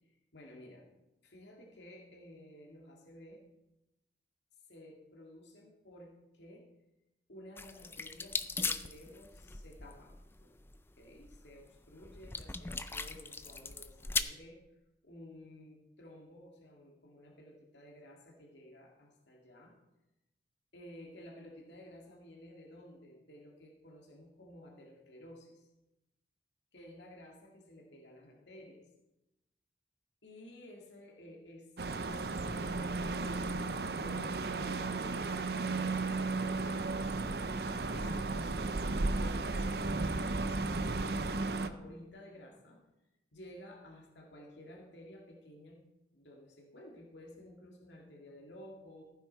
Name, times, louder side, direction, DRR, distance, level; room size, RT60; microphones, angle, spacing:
voice 1, 0.3-0.9 1.2-3.4 4.7-6.7 7.3-10.5 11.0-14.6 15.0-19.8 20.7-25.7 26.7-28.8 30.2-37.0 37.5-40.3 40.6-42.8 43.3-45.8 46.1-49.0, left 1 dB, 80° left, -1 dB, 2.2 m, -54 dB
sound 1, 7.6-14.2, left 4 dB, 15° left, 0.4 m, -39 dB
sound 2, 31.8-41.7, right 3 dB, 60° right, 0.7 m, -34 dB
15.0 x 9.5 x 4.5 m, 0.95 s
head